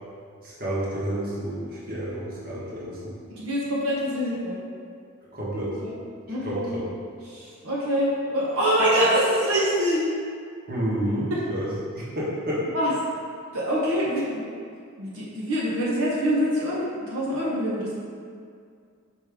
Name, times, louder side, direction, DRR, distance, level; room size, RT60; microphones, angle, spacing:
voice 1, 0.4-3.1 5.3-5.8 6.4-6.9 10.7-11.7 11.9-12.6, equal, 40° right, -7 dB, 1.5 m, -30 dB
voice 2, 3.3-4.6 5.8-6.0 6.3-6.6 7.2-10.1 11.3-11.4 12.7-12.9 13.5-14.5 15.0-17.9, equal, 75° right, -6 dB, 1.1 m, -25 dB
6.4 x 4.8 x 3.6 m, 2.2 s
head